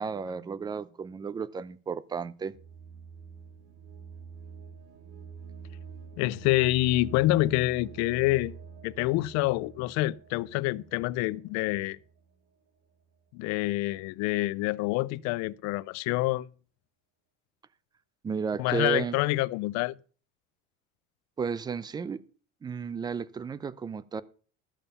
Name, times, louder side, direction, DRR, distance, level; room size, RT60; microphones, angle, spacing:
voice 1, 0.0-2.6 18.2-19.2 21.4-22.2 22.6-24.2, right 5 dB, 15° right, 0.4 m, -33 dB
sound 1, 2.5-12.3, right 6 dB, 50° right, 1.9 m, -47 dB
voice 2, 6.2-8.5 8.8-12.0 13.3-16.5 18.6-20.0, left 18 dB, 60° left, 0.5 m, -27 dB
13.0 x 7.1 x 5.5 m
cardioid pair, 150°, 31 cm